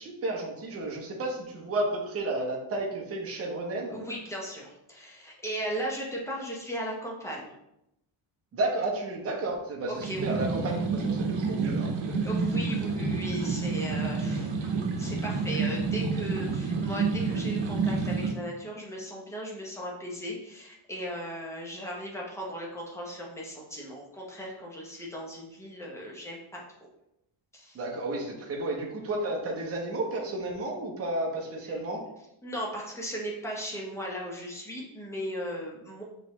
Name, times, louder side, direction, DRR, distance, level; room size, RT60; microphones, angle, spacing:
voice 1, 0.0-4.0 8.5-12.3 27.7-32.0, right 2 dB, 30° right, -1 dB, 0.7 m, -32 dB
voice 2, 3.9-7.5 9.9-10.3 12.2-26.6 27.5-27.8 32.4-36.0, equal, 5° left, -3 dB, 0.8 m, -37 dB
sound 1, 10.0-18.3, right 4 dB, 60° right, 1.0 m, -29 dB
5.1 x 3.2 x 3.0 m, 0.84 s
cardioid pair, 170°, 50 cm